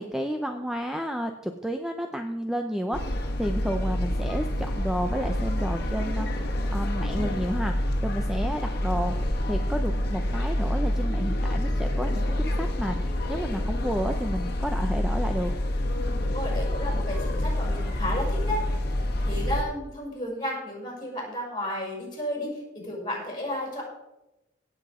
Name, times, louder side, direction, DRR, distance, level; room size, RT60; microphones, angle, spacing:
voice 1, 0.0-9.1 9.5-15.5, equal, 5° right, 5 dB, 0.6 m, -31 dB
sound 1, 2.9-19.6, left 1 dB, 55° left, 1.6 m, -27 dB
voice 2, 16.0-18.8 19.2-23.8, left 1 dB, 25° left, -3 dB, 5.8 m, -33 dB
17.0 x 7.7 x 4.9 m, 0.97 s
head